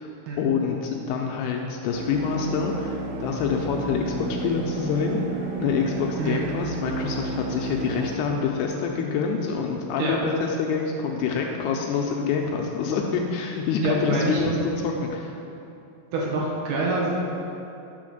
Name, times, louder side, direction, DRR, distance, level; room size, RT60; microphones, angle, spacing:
voice 1, 0.4-15.4, left 5 dB, 80° left, 1 dB, 2.4 m, -26 dB
sound 1, 1.9-8.2, right 4 dB, 90° right, 3.1 m, -32 dB
voice 2, 13.8-14.4 16.1-17.1, right 3 dB, 70° right, -4 dB, 2.9 m, -26 dB
9.7 x 3.8 x 6.4 m, 2.8 s
omnidirectional pair, 4.9 m